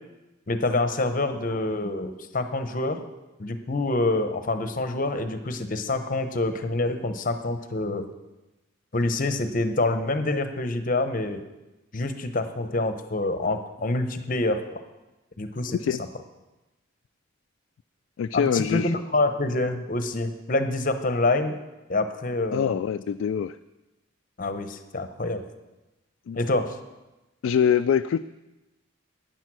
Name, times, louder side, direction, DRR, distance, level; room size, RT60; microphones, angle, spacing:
voice 1, 0.5-3.0 3.4-8.1 8.9-11.4 11.9-14.8 15.4-15.8 18.3-21.6 21.9-22.8 24.4-25.4 26.3-26.8, left 2 dB, 40° left, 8 dB, 0.8 m, -26 dB
voice 2, 18.2-19.0 22.5-23.5 26.3-26.4 27.4-28.2, left 8 dB, 75° left, 9 dB, 0.3 m, -24 dB
10.5 x 9.0 x 6.1 m, 1.1 s
head